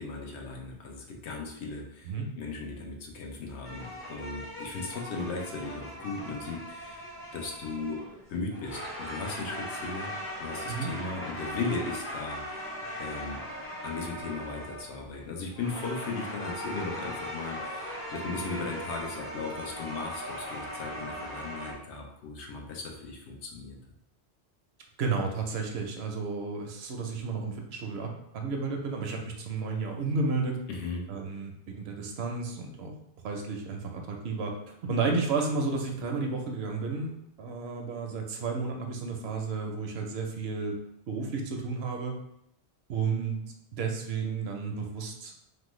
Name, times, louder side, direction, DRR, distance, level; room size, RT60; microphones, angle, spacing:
voice 1, 0.0-8.0 8.3-13.4 13.8-23.8 30.7-31.1, left 3 dB, 80° left, 0 dB, 0.9 m, -37 dB
sound 1, 3.6-21.7, equal, 20° left, 0.4 m, -39 dB
voice 2, 25.0-30.6 31.1-32.9 33.2-37.1 37.4-40.8 41.1-42.1 42.9-43.4 43.7-45.3, right 4 dB, 75° right, 2 dB, 0.8 m, -32 dB
3.2 x 2.1 x 3.0 m, 0.79 s
omnidirectional pair, 1.1 m